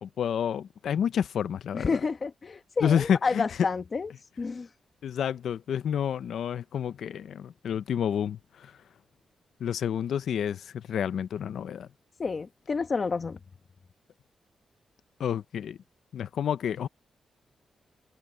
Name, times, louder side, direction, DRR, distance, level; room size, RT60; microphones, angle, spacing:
voice 1, 0.0-2.0 2.8-3.4 5.0-8.7 9.6-11.9 15.2-15.8 16.1-16.9, left 8 dB, 80° left, 0.7 m, -29 dB
voice 2, 1.7-4.1 4.4-4.7 12.2-13.4, left 4 dB, 35° left, 1.1 m, -29 dB
wide cardioid pair, 135°, 0 cm